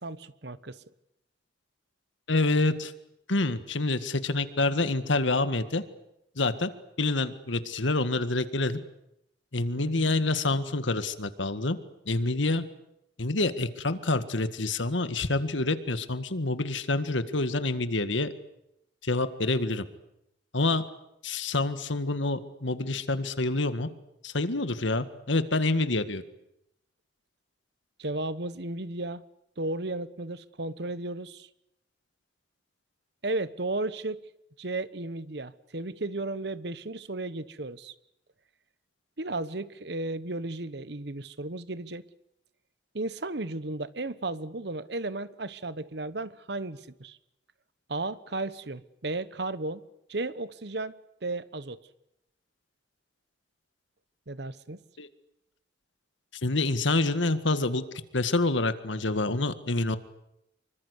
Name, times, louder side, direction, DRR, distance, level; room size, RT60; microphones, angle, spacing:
voice 1, 0.0-0.8 9.8-10.2 28.0-29.2 29.6-31.5 33.2-34.2 34.6-37.9 39.2-42.0 42.9-47.2 47.9-49.8 50.1-51.0 51.2-51.8 54.3-54.8, right 2 dB, 60° right, 16 dB, 1.1 m, -34 dB
voice 2, 2.3-2.9 3.3-5.8 6.4-6.7 7.0-8.8 9.5-11.8 12.1-12.6 13.2-18.3 19.0-19.8 20.5-20.8 21.2-23.9 24.2-26.2 55.0-55.1 56.4-57.8 58.1-60.0, left 2 dB, 80° left, 11 dB, 1.8 m, -27 dB
26.0 x 24.0 x 8.3 m, 0.82 s
head